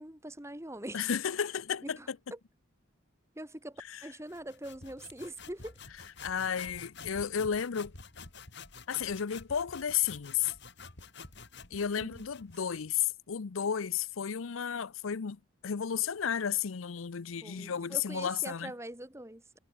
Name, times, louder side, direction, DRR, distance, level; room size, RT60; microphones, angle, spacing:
voice 1, 0.0-1.1 1.8-2.4 3.4-5.8 12.0-12.3 17.4-19.6, right 1 dB, 15° right, 2.4 m, -43 dB
voice 2, 0.9-2.2 3.9-4.0 6.2-7.9 8.9-10.5 11.7-18.7, left 8 dB, 75° left, 0.6 m, -33 dB
sound 1, 4.3-12.9, left 4 dB, 55° left, 3.3 m, -49 dB
head